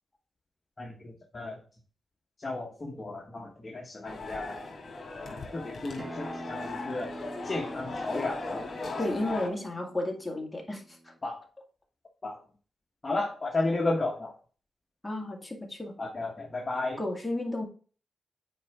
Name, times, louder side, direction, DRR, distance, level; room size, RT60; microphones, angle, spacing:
voice 1, 0.8-1.6 2.4-4.6 5.5-8.7 11.2-11.4 12.2-12.4 13.0-14.3 16.0-17.0, left 2 dB, 30° left, -2 dB, 1.3 m, -33 dB
sound 1, 4.0-9.5, left 2 dB, 50° left, 2.4 m, -38 dB
Acoustic guitar, 6.0-11.2, right 1 dB, 15° right, 1.1 m, -46 dB
voice 2, 9.0-11.1 15.0-15.9 17.0-17.6, left 1 dB, 10° left, 0 dB, 2.0 m, -33 dB
8.4 x 4.6 x 3.6 m, 0.40 s
cardioid pair, 90°, 0 cm